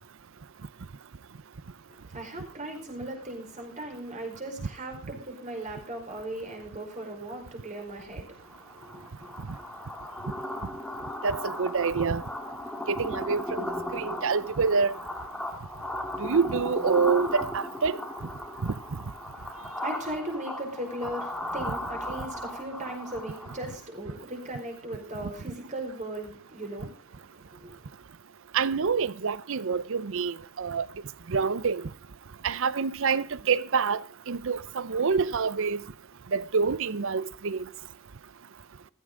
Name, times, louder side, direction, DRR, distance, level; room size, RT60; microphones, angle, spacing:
voice 1, 1.9-9.7 19.4-27.9, right 1 dB, 35° right, 4.8 m, -38 dB
sound 1, 8.4-23.8, left 1 dB, 5° left, 1.8 m, -36 dB
voice 2, 11.2-12.2 12.9-13.7 13.9-15.0 16.2-18.0 18.6-18.7 28.5-30.9 31.3-31.8 32.4-34.0 34.3-35.8 36.3-37.6, right 5 dB, 60° right, 0.6 m, -26 dB
15.5 x 15.0 x 3.8 m
head